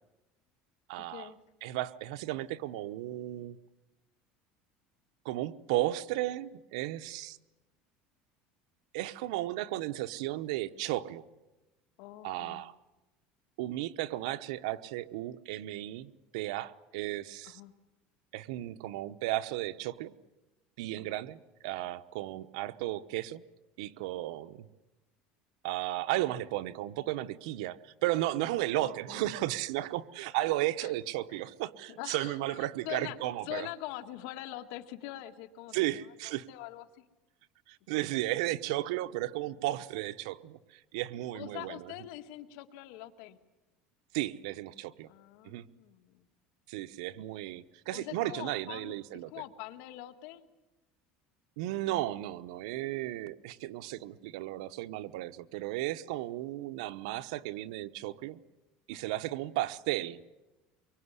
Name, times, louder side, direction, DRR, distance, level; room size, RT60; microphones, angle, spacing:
voice 1, 0.9-1.3 1.6-3.6 5.2-7.4 8.9-11.2 12.2-12.8 13.6-17.6 18.3-20.1 20.8-23.4 23.8-24.7 25.6-33.7 35.7-36.5 37.7-41.9 44.1-45.1 45.4-45.6 46.7-49.3 51.6-58.4 58.9-60.2, right 16 dB, 85° right, 11 dB, 1.0 m, -34 dB
voice 2, 12.0-12.6 17.4-17.7 21.0-21.2 28.8-29.4 30.8-30.9 31.3-31.4 32.0-33.2 33.4-37.0 41.3-43.4 45.1-46.3 47.9-49.0 49.3-50.5 58.9-59.2, left 15 dB, 75° left, 7 dB, 1.8 m, -44 dB
24.0 x 23.5 x 9.8 m, 1.1 s
cardioid pair, 145°, 3 cm